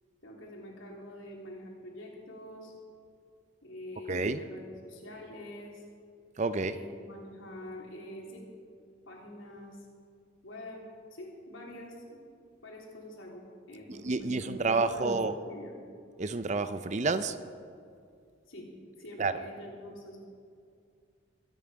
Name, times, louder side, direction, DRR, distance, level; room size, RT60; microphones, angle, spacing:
voice 1, 0.2-2.7 3.6-5.8 6.6-8.4 9.0-9.8 10.4-10.8 11.1-12.2 12.6-15.8 18.5-18.7 19.0-20.2, left 1 dB, 75° left, -2 dB, 3.4 m, -45 dB
voice 2, 4.1-4.4 6.4-6.8 14.0-15.3 16.2-17.3 19.2-19.3, right 3 dB, 35° right, 11 dB, 0.5 m, -29 dB
23.5 x 9.4 x 5.0 m, 2.3 s
head